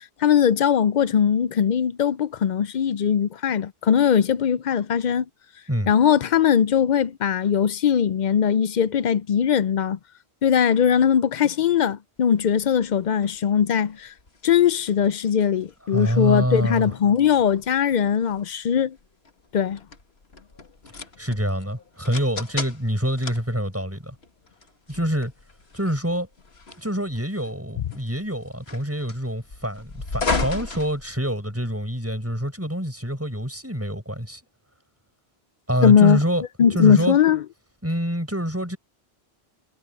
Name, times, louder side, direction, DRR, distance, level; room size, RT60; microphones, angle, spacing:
voice 1, 0.0-5.3 5.9-10.0 10.4-14.1 14.4-19.0 19.5-19.8 35.8-36.2 36.6-37.4, left 8 dB, 55° left, 0.6 m, -20 dB
sound 1, 12.3-31.7, left 4 dB, 75° left, 2.1 m, -36 dB
voice 2, 15.9-16.9 21.2-24.2 24.9-25.3 25.7-26.3 26.8-34.4 35.7-36.4 36.7-37.2 37.8-38.8, equal, 15° right, 7.4 m, -26 dB
omnidirectional pair, 1.1 m